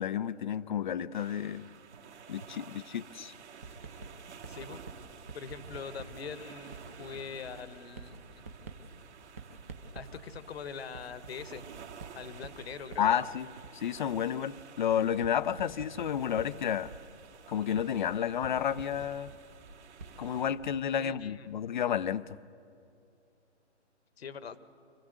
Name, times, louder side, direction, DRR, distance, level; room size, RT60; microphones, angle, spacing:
voice 1, 0.0-1.7 2.3-3.3 13.0-16.9 17.5-19.3 20.2-22.4, left 9 dB, 40° left, 17 dB, 0.5 m, -31 dB
sound 1, 1.1-20.5, right 6 dB, 70° right, 2.2 m, -52 dB
Writing, 3.6-21.0, right 4 dB, 15° right, 0.4 m, -49 dB
voice 2, 4.5-4.8 5.3-8.4 9.9-11.6 12.1-13.1 21.0-21.5 24.2-24.6, left 6 dB, 60° left, 13 dB, 1.3 m, -43 dB
26.0 x 16.0 x 8.0 m, 2.7 s
hypercardioid pair, 150°, 36 cm